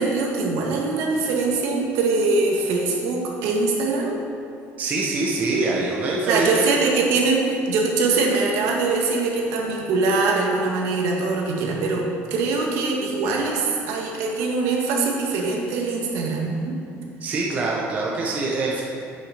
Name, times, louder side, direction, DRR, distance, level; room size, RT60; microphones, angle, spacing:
voice 1, 0.0-4.2 6.3-16.7, right 3 dB, 70° right, -1 dB, 1.8 m, -22 dB
voice 2, 4.8-6.6 17.2-18.8, right 3 dB, 30° right, -3 dB, 1.1 m, -24 dB
8.3 x 6.4 x 6.6 m, 2.5 s
cardioid pair, 160°, 5 cm